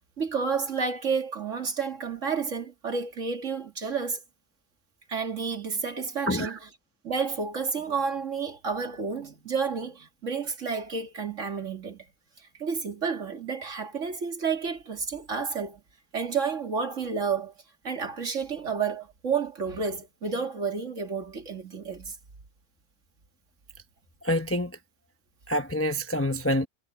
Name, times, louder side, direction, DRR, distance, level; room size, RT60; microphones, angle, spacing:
voice 1, 0.2-4.2 5.1-6.6 7.0-12.1 12.6-15.8 16.1-17.5 17.8-22.2, right 5 dB, 55° right, 2.5 m, -30 dB
voice 2, 6.3-6.6 24.2-24.8 25.5-26.7, left 1 dB, 10° left, 0.7 m, -27 dB
omnidirectional pair, 1.6 m